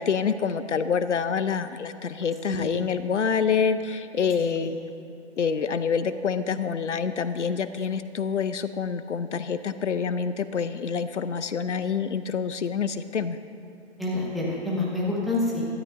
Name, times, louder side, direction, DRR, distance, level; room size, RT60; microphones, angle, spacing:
voice 1, 0.0-4.7 5.4-13.4, left 6 dB, 80° left, 12 dB, 0.7 m, -27 dB
voice 2, 2.5-2.8 4.4-4.7 14.0-15.7, left 2 dB, ahead, -6 dB, 1.2 m, -28 dB
17.5 x 13.0 x 2.6 m, 2.5 s
figure-of-eight pair, 145°, 35 cm